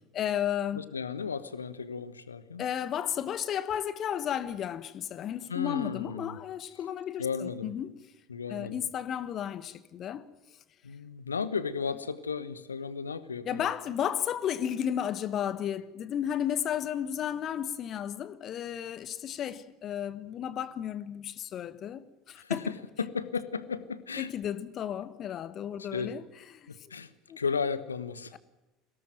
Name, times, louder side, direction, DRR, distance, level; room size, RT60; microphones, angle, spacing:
voice 1, 0.1-0.8 2.6-8.0 8.5-10.3 13.4-22.6 24.2-26.2 26.5-26.9 27.3-27.4, left 9 dB, 40° left, 1.3 m, -33 dB
voice 2, 0.7-2.7 5.5-6.4 7.2-7.8 8.3-8.8 10.8-13.6 22.4-24.3 25.8-26.1 26.7-27.1 27.4-28.4, left 5 dB, 80° left, 1.2 m, -34 dB
23.0 x 18.0 x 9.3 m
figure-of-eight pair, 70°, 0 cm